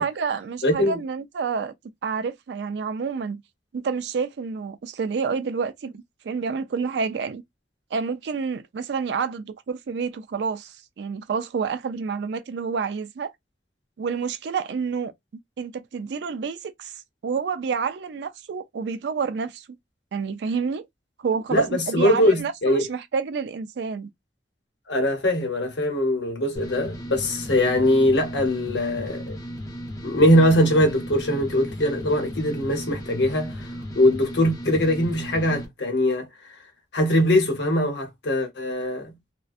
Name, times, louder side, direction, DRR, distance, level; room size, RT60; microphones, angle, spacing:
voice 1, 0.0-1.7 2.0-3.4 3.7-7.4 7.9-13.3 14.0-15.1 15.6-16.9 17.2-19.8 20.1-20.9 21.2-24.1, right 5 dB, 75° right, 0.3 m, -29 dB
voice 2, 0.6-1.0 21.5-22.9 24.9-29.4 30.0-33.7 33.9-36.3 36.9-39.1, left 1 dB, 85° left, 0.8 m, -21 dB
sound 1, 26.6-35.7, equal, 20° left, 0.6 m, -35 dB
2.5 x 2.1 x 2.3 m
head